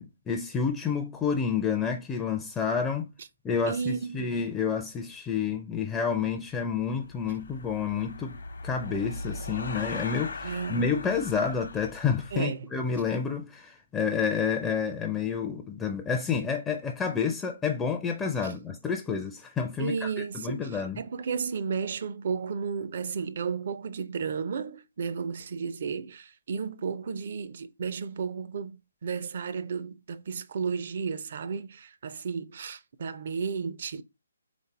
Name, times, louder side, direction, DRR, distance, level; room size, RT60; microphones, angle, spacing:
voice 1, 0.0-3.1 3.4-20.1 20.3-21.0, left 6 dB, 10° left, 0.4 m, -29 dB
voice 2, 3.7-4.3 10.4-10.9 12.3-12.7 18.4-18.5 19.8-20.7 21.0-34.0, right 6 dB, 50° right, 0.5 m, -33 dB
sound 1, 6.0-6.4 7.0-12.4, left 3 dB, 60° left, 0.9 m, -39 dB
4.2 x 3.5 x 3.3 m
figure-of-eight pair, 140°, 0 cm